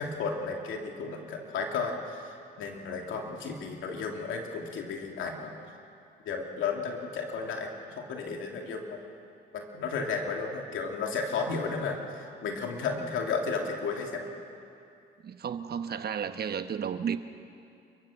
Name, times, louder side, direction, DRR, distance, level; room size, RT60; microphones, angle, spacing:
voice 1, 0.0-5.5 6.2-9.0 9.5-14.2, left 4 dB, 80° left, 1 dB, 3.0 m, -33 dB
voice 2, 15.2-17.2, right 7 dB, 50° right, 9 dB, 1.1 m, -33 dB
28.5 x 15.0 x 7.4 m, 2.5 s
cardioid pair, 90°, 20 cm